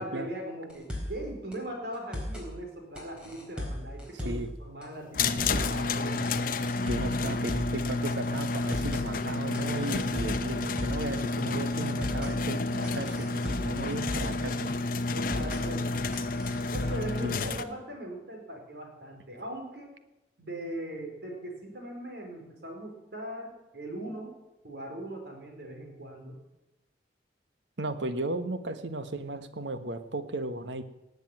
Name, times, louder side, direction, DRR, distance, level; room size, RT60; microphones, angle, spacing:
voice 1, 0.0-6.3 15.1-15.9 16.7-19.9 20.4-24.3 24.6-26.4, right 1 dB, 65° right, 2 dB, 4.8 m, -40 dB
sound 1, 0.7-1.2 1.5-1.6 1.9-2.5 3.0-4.5 4.8-4.9 5.2-5.8 6.2-7.8 8.1-8.2 8.5-9.1 9.5-11.1 11.4-11.5 11.8-12.3 12.8-14.4 14.7-14.8 15.1-15.6 16.1-17.1, left 1 dB, 5° right, 4.4 m, -36 dB
sound 2, 5.1-17.6, left 3 dB, 50° left, 0.9 m, -30 dB
voice 2, 6.8-14.7 17.2-17.6 27.8-30.8, right 2 dB, 90° right, 10 dB, 1.3 m, -35 dB
18.5 x 8.1 x 9.1 m, 0.96 s
head